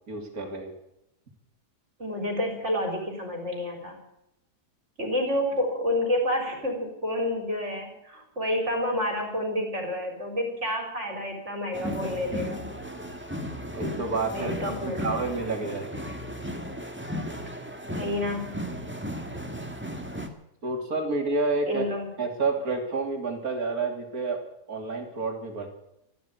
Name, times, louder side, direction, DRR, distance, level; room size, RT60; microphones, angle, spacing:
voice 1, 0.1-0.7 13.7-16.1 20.6-21.8 22.2-24.4 24.7-25.7, right 3 dB, 65° right, 4 dB, 3.3 m, -29 dB
voice 2, 2.0-4.0 5.0-12.6 14.3-15.2 18.0-18.6 21.7-22.1, left 1 dB, 45° right, 2 dB, 4.4 m, -29 dB
sound 1, 11.7-20.3, equal, 5° right, 1.5 m, -35 dB
14.0 x 12.5 x 8.3 m, 0.85 s
omnidirectional pair, 1.7 m